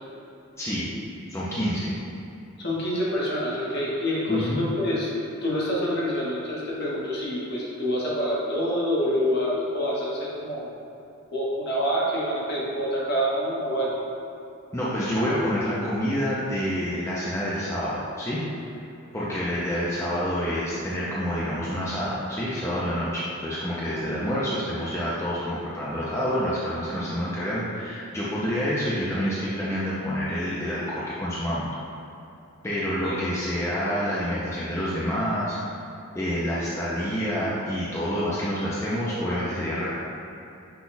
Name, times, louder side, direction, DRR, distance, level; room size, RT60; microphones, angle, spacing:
voice 1, 0.6-0.9 1.3-1.9 4.3-4.6 14.7-18.4 19.1-31.7 32.6-35.8 36.1-39.9, equal, 15° left, -8 dB, 0.5 m, -28 dB
voice 2, 2.6-5.1 5.4-10.7 11.3-14.0 23.9-24.0 33.0-33.2, equal, 50° left, -6 dB, 1.1 m, -27 dB
5.9 x 2.3 x 3.9 m, 2.8 s
head